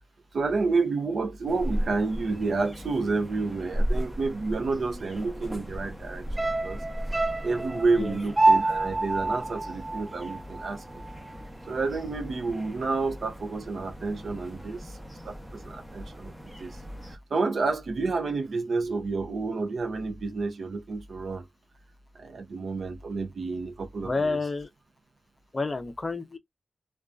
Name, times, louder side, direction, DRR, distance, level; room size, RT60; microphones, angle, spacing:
voice 1, 0.3-6.8 7.4-11.0 11.7-15.0 15.2-16.8 17.1-21.5 22.2-24.4, right 3 dB, 65° right, 0.6 m, -30 dB
sound 1, 1.5-17.2, equal, 5° right, 0.7 m, -37 dB
sound 2, 6.4-10.8 11.1-11.2, right 2 dB, 25° right, 0.3 m, -26 dB
voice 2, 24.0-24.7 25.5-26.4, left 3 dB, 30° left, 0.5 m, -29 dB
2.5 x 2.3 x 2.2 m
wide cardioid pair, 145°, 0 cm